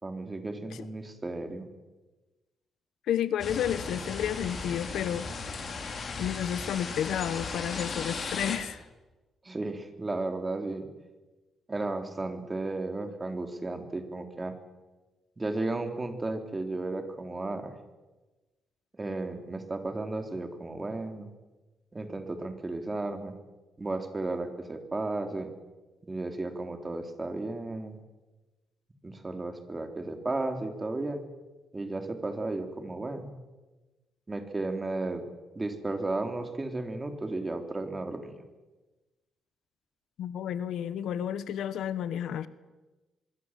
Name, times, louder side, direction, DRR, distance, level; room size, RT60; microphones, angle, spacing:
voice 1, 0.0-1.7 9.4-10.9 11.7-14.5 15.4-17.7 19.0-21.3 21.9-23.4 23.8-25.5 26.1-28.0 29.0-31.2 31.7-33.3 34.3-35.2 35.6-38.4, right 2 dB, 20° right, 6 dB, 3.5 m, -34 dB
voice 2, 3.1-5.7 6.2-8.8 40.2-42.5, left 9 dB, 80° left, 15 dB, 1.2 m, -31 dB
sound 1, 3.4-8.6, left 4 dB, 45° left, 5.2 m, -36 dB
24.5 x 22.5 x 7.6 m, 1.2 s
cardioid pair, 115°, 0 cm